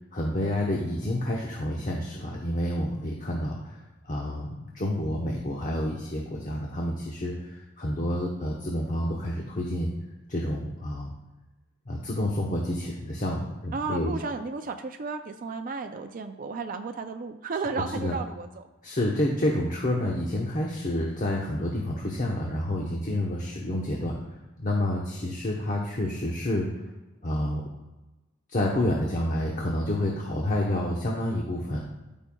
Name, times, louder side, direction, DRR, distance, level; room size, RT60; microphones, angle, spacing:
voice 1, 0.1-9.9 10.3-11.1 11.9-14.1 17.9-18.2 18.8-24.1 24.6-26.7 27.2-27.7 28.5-31.8, left 1 dB, 40° left, -1 dB, 0.9 m, -29 dB
voice 2, 13.7-18.7, right 4 dB, 40° right, 6 dB, 0.4 m, -33 dB
13.5 x 5.5 x 2.3 m, 1.1 s
head